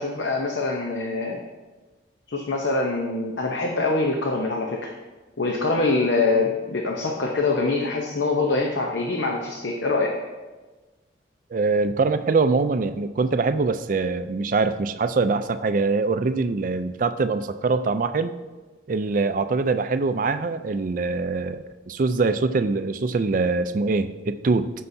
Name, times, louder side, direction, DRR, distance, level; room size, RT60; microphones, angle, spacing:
voice 1, 0.0-1.4 2.3-4.8 5.4-10.1, left 3 dB, 70° left, 0 dB, 0.8 m, -24 dB
voice 2, 11.5-18.3 18.9-24.7, right 3 dB, 45° right, 11 dB, 0.3 m, -23 dB
13.5 x 5.5 x 2.7 m, 1.3 s
head